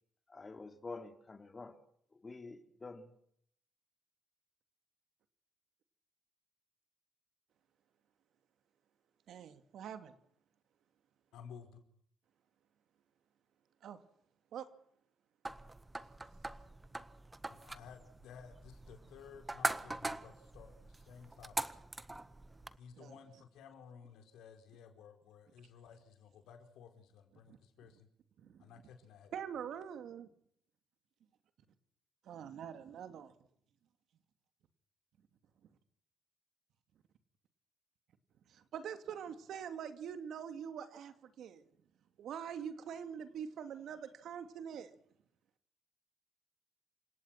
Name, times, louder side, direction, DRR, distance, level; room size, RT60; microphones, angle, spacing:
voice 1, 0.3-1.8 2.1-3.2, left 3 dB, 30° left, 7 dB, 3.4 m, -48 dB
voice 2, 9.3-10.1 13.8-14.0 14.5-14.7 23.0-23.1 27.5-27.6 28.4-28.6 29.3-30.3 32.2-33.3 38.5-41.7 42.2-44.9, right 8 dB, 75° right, 9 dB, 2.7 m, -44 dB
voice 3, 11.3-11.8 17.5-21.7 22.8-28.1 28.6-29.3, left 6 dB, 85° left, 6 dB, 4.9 m, -55 dB
sound 1, 15.4-22.8, right 2 dB, 15° right, 1.6 m, -42 dB
28.5 x 17.5 x 6.0 m, 0.67 s
cardioid pair, 90°, 0 cm